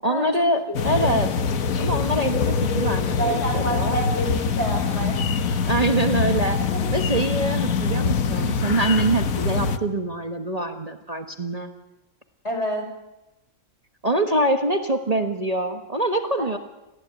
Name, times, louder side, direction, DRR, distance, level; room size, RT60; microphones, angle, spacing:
voice 1, 0.0-1.3 1.8-4.0 5.6-6.6 6.9-11.7 14.0-16.6, right 1 dB, 30° right, 5 dB, 1.4 m, -24 dB
sound 1, 0.7-9.8, left 5 dB, 85° left, 1.6 m, -24 dB
voice 2, 0.7-1.1 3.2-5.4 6.6-6.9 12.4-12.9 16.4-16.5, equal, 55° left, 3 dB, 6.4 m, -28 dB
29.0 x 14.5 x 9.0 m, 0.97 s
omnidirectional pair, 1.4 m